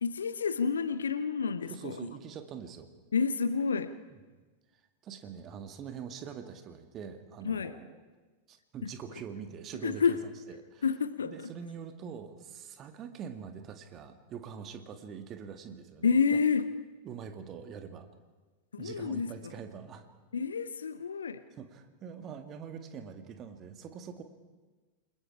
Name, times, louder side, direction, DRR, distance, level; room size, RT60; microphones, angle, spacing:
voice 1, 0.0-2.0 3.1-3.9 7.4-7.7 8.8-8.9 9.8-10.2 10.8-11.5 16.0-16.7 18.7-19.5 20.3-21.4, left 5 dB, 70° left, 14 dB, 0.8 m, -29 dB
voice 2, 1.7-2.9 4.1-4.2 5.0-8.0 8.5-10.8 11.2-16.4 17.0-18.1 18.8-20.1 21.5-24.2, right 7 dB, 30° right, 7 dB, 2.0 m, -44 dB
28.5 x 21.0 x 4.9 m, 1.3 s
figure-of-eight pair, 90°, 0 cm